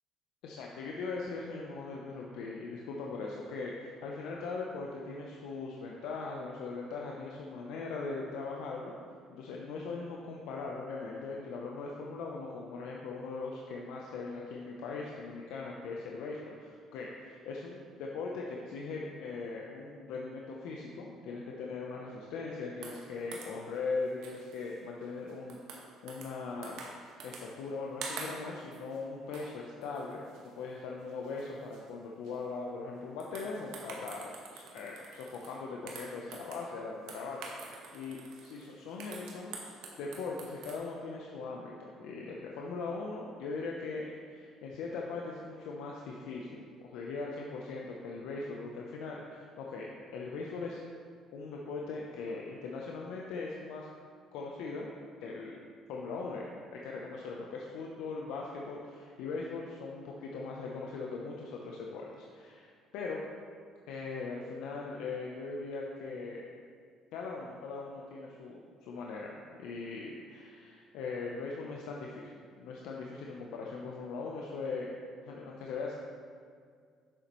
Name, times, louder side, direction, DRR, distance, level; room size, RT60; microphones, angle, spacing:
voice 1, 0.4-8.9 9.3-25.6 26.0-30.2 30.5-39.6 40.0-49.9 50.1-50.8 51.3-53.9 54.3-54.9 55.2-55.5 55.9-56.4 56.7-63.3 63.9-66.4 67.1-75.0 75.2-75.9, left 4 dB, 80° left, -2 dB, 0.6 m, -40 dB
sound 1, 22.8-23.8 24.2-24.8 25.0-26.4 26.6-27.8 28.0-29.0 29.3-29.6 29.8-30.7 31.1-31.4 31.7-31.8 32.2-32.4 33.2-35.6 35.9-36.7 37.1-40.8, right 4 dB, 80° right, 1.0 m, -47 dB
7.6 x 6.7 x 3.0 m, 2.1 s
supercardioid pair, 90°, 0 cm